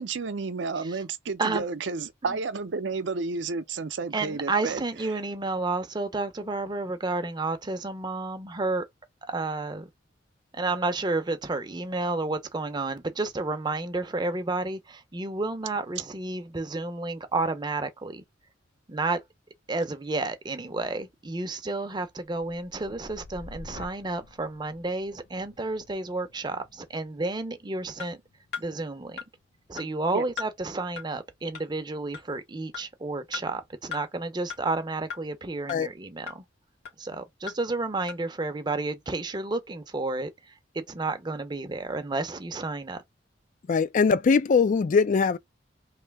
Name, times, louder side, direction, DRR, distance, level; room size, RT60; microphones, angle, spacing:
voice 1, 0.0-4.8 30.1-30.2, right 4 dB, 70° right, 0.6 m, -31 dB
voice 2, 4.1-8.9 9.2-9.9 10.5-18.2 18.9-19.2 19.7-28.2 28.6-29.2 29.7-36.4 37.0-43.0, right 3 dB, 25° right, 0.6 m, -31 dB
sound 1, 22.2-30.1 30.6-31.1, left 2 dB, 85° left, 0.7 m, -50 dB
sound 2, 28.0-28.1 28.5-28.7 29.2-29.3 29.8-29.9 30.4-30.5 31.0-31.1 31.5-31.6 32.1-32.2 32.7-32.8 33.3-33.4 33.9-34.0 34.5-34.6 35.1-35.2 35.7-35.8 36.3-36.4 36.8-36.9 37.5-37.6 38.1-38.2, left 6 dB, 60° left, 1.9 m, -36 dB
voice 3, 43.7-45.4, left 5 dB, 45° left, 0.3 m, -21 dB
3.2 x 2.8 x 3.4 m
head